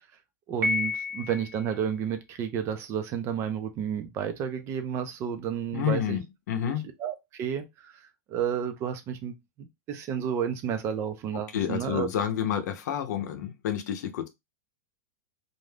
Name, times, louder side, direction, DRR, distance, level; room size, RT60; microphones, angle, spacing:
voice 1, 0.5-6.2 7.0-8.0 8.3-9.3 9.9-12.1, right 8 dB, 30° right, 0.5 m, -31 dB
Piano, 0.6-1.7, left 3 dB, 85° right, 1.1 m, -30 dB
voice 2, 5.7-6.8 11.5-14.3, left 9 dB, 70° left, 0.7 m, -29 dB
2.5 x 2.2 x 3.3 m
supercardioid pair, 155°, 10 cm